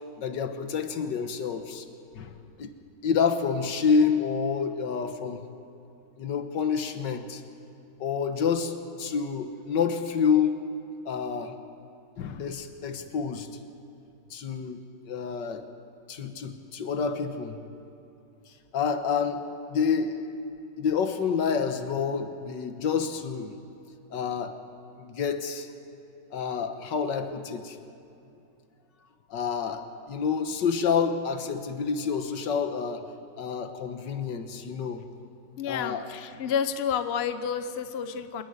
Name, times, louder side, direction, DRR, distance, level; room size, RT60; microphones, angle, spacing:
voice 1, 0.2-1.9 2.2-2.3 2.6-2.7 3.0-5.5 6.2-7.4 8.0-10.6 11.1-11.6 12.2-13.5 14.3-14.8 15.1-15.7 16.1-17.6 18.7-20.2 20.8-23.5 24.1-24.6 25.0-25.7 26.3-27.8 29.3-33.1 33.4-35.1 35.7-36.1, left 6 dB, 70° left, 8 dB, 1.8 m, -28 dB
voice 2, 35.6-38.4, left 7 dB, 50° left, 10 dB, 0.8 m, -30 dB
28.0 x 10.5 x 9.6 m, 2.8 s
omnidirectional pair, 2.1 m